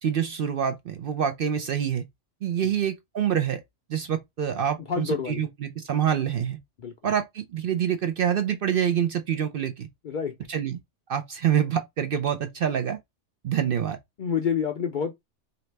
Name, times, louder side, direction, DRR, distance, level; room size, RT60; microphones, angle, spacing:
voice 1, 0.0-2.0 2.4-3.6 3.9-6.6 7.0-9.9 10.5-10.8 11.1-13.0 13.4-14.0, right 9 dB, 60° right, 0.6 m, -26 dB
voice 2, 4.9-5.4 6.8-7.1 10.0-10.4 14.2-15.1, left 7 dB, 60° left, 0.5 m, -28 dB
3.9 x 2.8 x 3.2 m
omnidirectional pair, 1.3 m